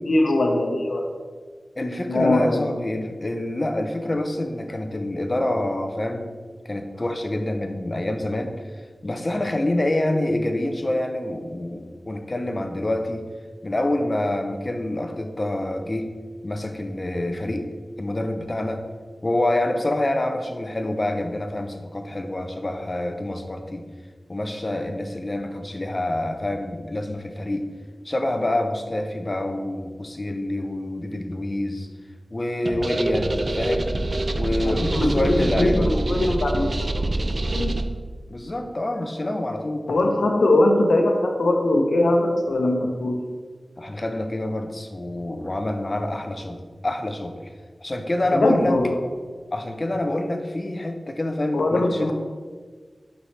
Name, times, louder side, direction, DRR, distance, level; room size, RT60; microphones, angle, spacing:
voice 1, 0.1-1.1 2.1-2.7 34.6-37.7 39.9-43.2 48.3-49.0 51.5-52.1, left 1 dB, 85° left, 2 dB, 0.8 m, -21 dB
voice 2, 1.8-6.3 6.6-8.5 9.0-13.2 13.6-16.1 16.4-17.7 18.0-18.8 19.2-23.9 24.3-27.7 28.0-31.9 32.3-33.9 34.3-36.1 38.3-39.9 43.8-47.4 47.8-48.7 49.5-52.1, left 1 dB, 35° left, 5 dB, 0.6 m, -26 dB
sound 1, 32.7-37.8, right 2 dB, 45° right, 0.4 m, -25 dB
6.2 x 5.4 x 3.3 m, 1.5 s
wide cardioid pair, 80°, 0 cm